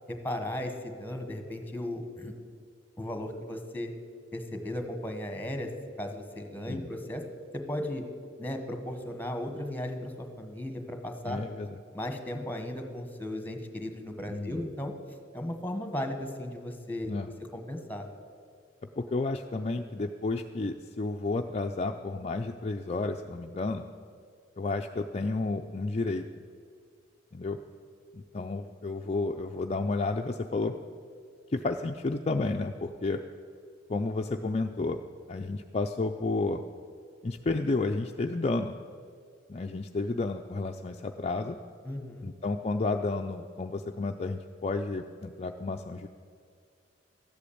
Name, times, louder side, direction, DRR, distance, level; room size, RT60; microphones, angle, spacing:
voice 1, 0.1-2.3 3.0-3.9 4.3-5.7 6.0-7.2 7.5-8.0 8.4-11.4 11.9-14.9 15.3-17.1 17.5-18.0 41.8-42.3, left 1 dB, 10° left, 6 dB, 1.3 m, -36 dB
voice 2, 11.2-11.8 14.3-14.6 17.1-17.3 19.0-23.9 24.6-26.3 27.3-27.6 28.1-30.8 31.5-33.2 33.9-35.0 35.3-36.6 37.2-38.8 39.5-41.6 42.2-46.1, left 3 dB, 35° left, 4 dB, 0.5 m, -31 dB
14.0 x 8.3 x 8.6 m, 2.2 s
head